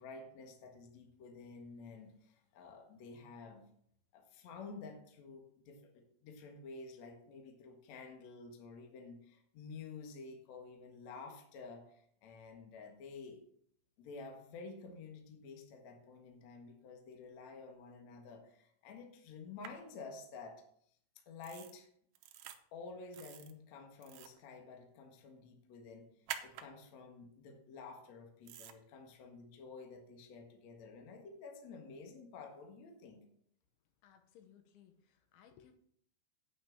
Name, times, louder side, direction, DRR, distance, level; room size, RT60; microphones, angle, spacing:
voice 1, 0.0-3.7 4.1-13.4 14.0-20.6 21.3-21.9 22.7-33.2, left 4 dB, 65° left, 3 dB, 1.8 m, -51 dB
sound 1, 19.6-19.7 21.4-21.7 22.2-22.6 23.1-23.5 24.0-24.4 26.3-26.7 28.5-28.7, right 10 dB, 85° right, 2.3 m, -46 dB
voice 2, 34.0-35.7, left 9 dB, 80° left, 7 dB, 3.2 m, -62 dB
8.9 x 5.9 x 7.4 m, 0.66 s
omnidirectional pair, 5.6 m